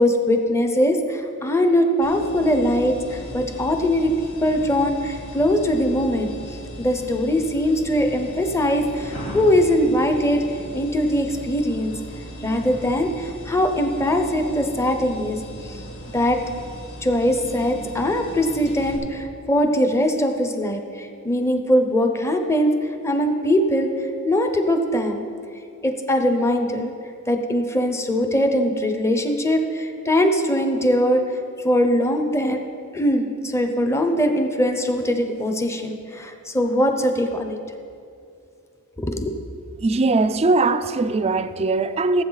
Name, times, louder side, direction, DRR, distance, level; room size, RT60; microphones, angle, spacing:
voice 1, 0.0-4.1 4.4-10.4 10.7-11.9 12.4-15.4 15.7-15.8 16.1-16.4 17.0-22.7 23.0-23.9 24.2-25.2 25.8-26.9 27.3-31.2 31.6-32.6 32.9-37.6 39.0-39.3, equal, 15° left, 0.7 m, -21 dB
sound 1, 2.0-19.0, equal, 80° left, 2.8 m, -37 dB
voice 2, 39.8-42.2, right 3 dB, 30° right, 0.4 m, -20 dB
17.0 x 8.0 x 4.0 m
head